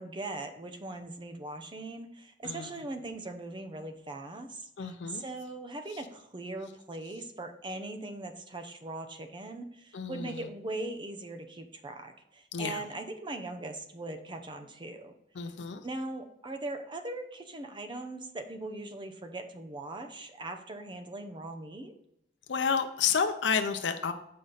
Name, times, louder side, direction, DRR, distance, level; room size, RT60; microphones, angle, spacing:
voice 1, 0.0-15.1 15.8-21.9, right 2 dB, 25° right, 7 dB, 0.7 m, -40 dB
voice 2, 2.4-2.8 4.8-5.2 5.9-6.0 9.9-10.5 12.5-12.8 15.3-15.8 22.5-24.1, left 6 dB, 85° left, 7 dB, 0.6 m, -30 dB
7.6 x 5.1 x 4.0 m, 0.79 s
head